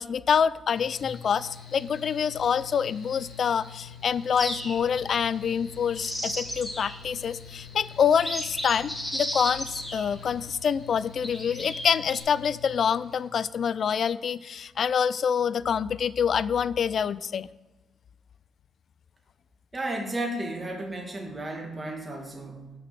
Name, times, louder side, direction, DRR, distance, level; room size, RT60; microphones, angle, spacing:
voice 1, 0.0-17.5, left 7 dB, 55° left, 19 dB, 0.3 m, -26 dB
Mechanical fan, 0.7-13.3, left 7 dB, 75° left, 2.2 m, -46 dB
sound 1, 4.4-5.0 5.7-7.0 7.6-7.7 8.1-10.4 11.2-12.2, equal, 5° left, 2.2 m, -34 dB
voice 2, 19.7-22.7, right 1 dB, 20° right, 1 dB, 2.1 m, -33 dB
6.7 x 5.9 x 7.4 m, 1.1 s
cardioid pair, 90°, 0 cm